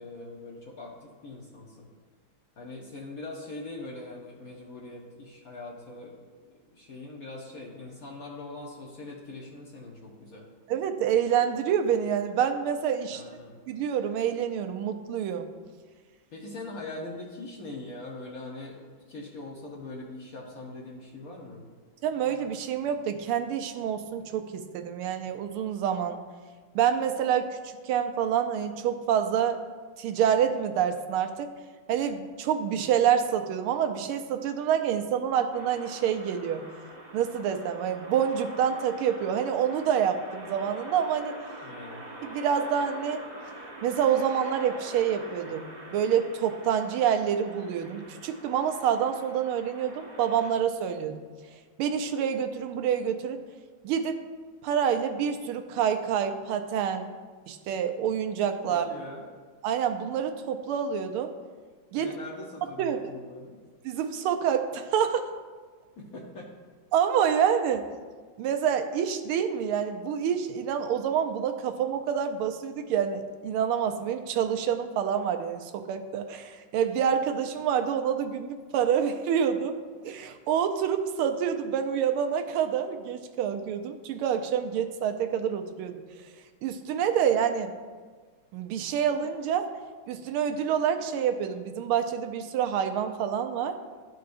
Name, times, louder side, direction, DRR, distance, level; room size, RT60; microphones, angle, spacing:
voice 1, 0.0-1.9 2.6-6.2 6.7-10.5 13.1-13.6 16.3-21.6 41.6-42.1 58.7-59.2 61.9-63.6 66.0-66.5, left 2 dB, 60° left, -2 dB, 1.0 m, -42 dB
voice 2, 10.7-13.2 13.7-15.5 22.0-26.2 26.7-27.6 27.8-29.6 30.0-31.5 31.9-36.6 37.1-41.3 42.2-43.2 43.8-51.2 51.8-53.4 53.8-54.2 54.6-57.1 57.5-58.9 59.6-61.3 61.9-62.2 62.8-63.1 63.8-65.3 66.9-67.8 68.4-79.7 80.0-86.0 86.6-87.7 88.5-89.7 90.1-93.8, right 8 dB, 90° right, 7 dB, 1.5 m, -27 dB
sound 1, 35.5-50.5, right 1 dB, 70° right, 0.4 m, -45 dB
12.5 x 4.7 x 2.6 m, 1.5 s
omnidirectional pair, 2.3 m